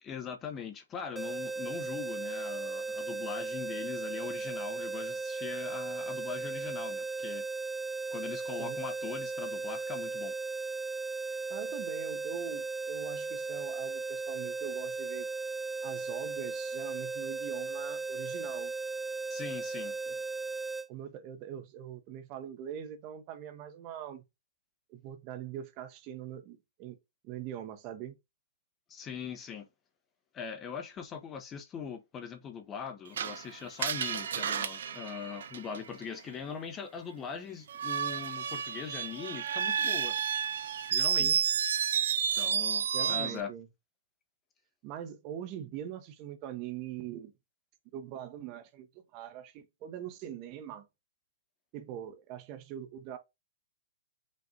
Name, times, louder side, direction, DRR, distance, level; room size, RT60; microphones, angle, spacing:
voice 1, 0.0-7.5 8.1-10.3 19.3-20.0 28.9-29.7 30.3-40.2 40.9-41.4 42.3-43.5, left 7 dB, 20° left, 0.9 m, -41 dB
sound 1, 1.1-20.9, right 4 dB, 10° right, 0.4 m, -36 dB
voice 2, 11.5-15.3 15.8-18.7 20.1-20.2 20.9-24.2 24.9-27.0 27.2-28.1 41.2-41.4 42.9-43.7 44.8-47.3 47.9-48.9 49.1-50.9 51.7-53.2, right 10 dB, 35° right, 0.9 m, -42 dB
Screech, 33.2-36.0 37.7-43.4, right 8 dB, 65° right, 0.5 m, -31 dB
5.3 x 2.6 x 3.7 m
hypercardioid pair, 130°, 0 cm